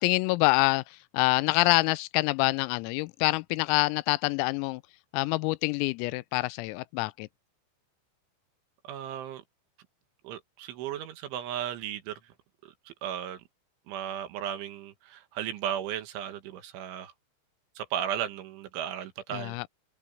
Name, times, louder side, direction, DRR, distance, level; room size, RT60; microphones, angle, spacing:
voice 1, 0.0-4.8 5.1-7.3 19.3-19.7, left 23 dB, 85° left, 3.3 m, -26 dB
voice 2, 8.8-9.4 10.2-12.2 12.6-13.4 13.9-17.1 17.8-19.7, right 10 dB, 70° right, 3.8 m, -35 dB
open air
omnidirectional pair, 6.0 m